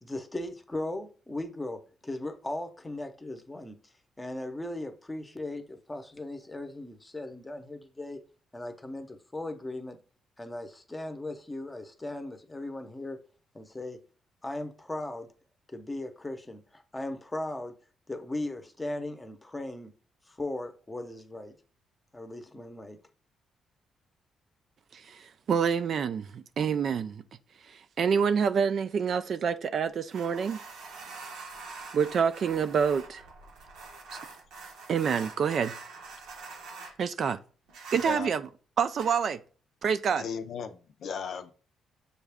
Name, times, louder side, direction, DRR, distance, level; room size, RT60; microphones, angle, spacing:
voice 1, 0.0-3.8 4.2-8.2 8.5-10.0 10.4-13.2 13.5-14.0 14.4-15.3 15.7-17.7 18.1-19.9 20.3-21.5 22.1-23.0, left 1 dB, 15° left, 0.7 m, -37 dB
voice 2, 24.9-27.2 27.6-30.6 31.9-33.2 34.1-34.2 34.9-35.7 37.0-37.4 37.9-38.5 38.8-39.4 39.8-40.2, right 6 dB, 55° right, 0.3 m, -27 dB
sound 1, 30.1-36.9 37.7-38.3 38.9-39.2, right 4 dB, 85° right, 0.8 m, -44 dB
voice 3, 37.9-38.3 40.1-41.5, left 6 dB, 65° left, 0.5 m, -37 dB
6.3 x 2.4 x 3.4 m
cardioid pair, 90°, 0 cm